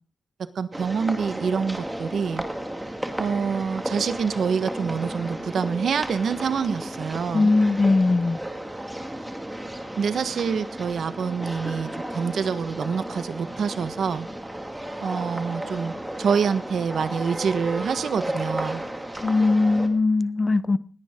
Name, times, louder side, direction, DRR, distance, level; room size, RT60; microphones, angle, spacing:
voice 1, 0.5-2.4 3.2-7.5 10.0-14.3 15.0-18.8, right 6 dB, 85° right, 1.4 m, -26 dB
sound 1, 0.7-19.9, right 1 dB, 10° right, 2.2 m, -34 dB
voice 2, 7.3-8.4 19.2-20.8, left 3 dB, 25° left, 0.8 m, -20 dB
20.0 x 17.5 x 3.8 m
wide cardioid pair, 165°, 0 cm